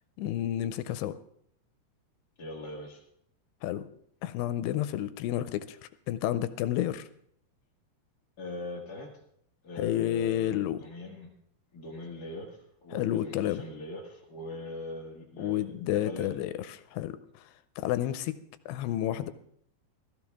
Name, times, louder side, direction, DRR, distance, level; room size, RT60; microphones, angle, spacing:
voice 1, 0.2-1.1 3.6-3.9 4.2-5.8 6.1-7.1 9.8-10.8 12.9-13.6 15.4-17.2 17.8-18.3 18.7-19.3, left 12 dB, 85° left, 12 dB, 2.7 m, -30 dB
voice 2, 2.4-3.0 8.4-9.1 9.6-11.3 11.7-16.3, left 1 dB, 65° left, -2 dB, 0.9 m, -41 dB
15.5 x 14.5 x 3.5 m, 0.69 s
omnidirectional pair, 4.8 m